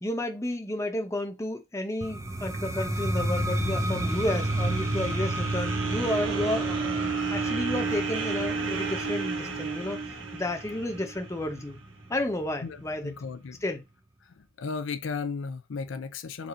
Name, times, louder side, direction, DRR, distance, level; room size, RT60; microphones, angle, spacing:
voice 1, 0.0-7.0 7.3-10.0 10.3-11.8 12.1-13.1 13.6-13.8, left 1 dB, 15° left, 0.8 m, -31 dB
sound 1, 2.0-11.8, right 1 dB, 15° right, 0.5 m, -31 dB
sound 2, 3.4-11.6, right 5 dB, 80° right, 1.0 m, -32 dB
voice 2, 12.6-13.6 14.3-16.5, left 5 dB, 75° left, 0.5 m, -35 dB
4.0 x 2.6 x 4.3 m
head